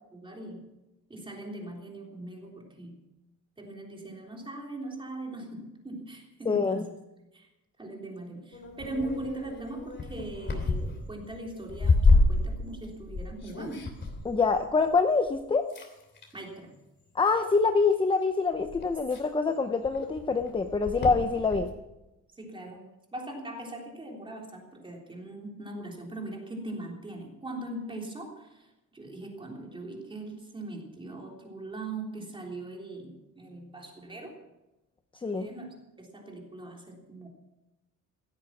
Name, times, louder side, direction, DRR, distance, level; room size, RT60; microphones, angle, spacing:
voice 1, 0.1-0.7 1.1-3.0 3.6-6.8 7.3-7.5 7.8-13.8 16.3-16.8 22.4-34.4 35.3-37.3, right 2 dB, 15° right, 0 dB, 3.5 m, -40 dB
voice 2, 6.5-6.8 14.2-15.7 17.1-21.7 35.2-35.5, left 4 dB, 15° left, 7 dB, 0.6 m, -25 dB
sound 1, 8.5-15.4 15.7-16.4 17.3-17.7 18.2-18.3 18.5-21.7, left 3 dB, 35° left, 3.0 m, -29 dB
16.0 x 13.5 x 6.0 m, 0.97 s
wide cardioid pair, 165°, 32 cm